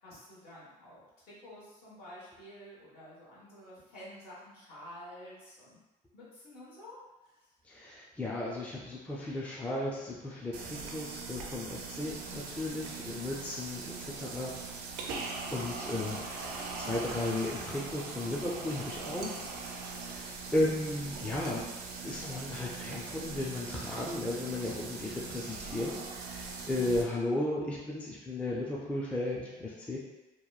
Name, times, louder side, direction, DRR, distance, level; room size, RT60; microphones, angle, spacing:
voice 1, 0.0-5.8 6.1-7.0 7.2-7.3 13.0-13.3 26.7-27.1, left 1 dB, 65° left, -7 dB, 1.3 m, -50 dB
voice 2, 7.6-14.5 15.5-21.6 22.0-30.0, left 2 dB, 10° left, -5 dB, 0.4 m, -35 dB
sound 1, 10.5-27.0, right 4 dB, 75° right, 0.4 m, -41 dB
2.9 x 2.1 x 2.3 m, 1.1 s
cardioid pair, 110°, 17 cm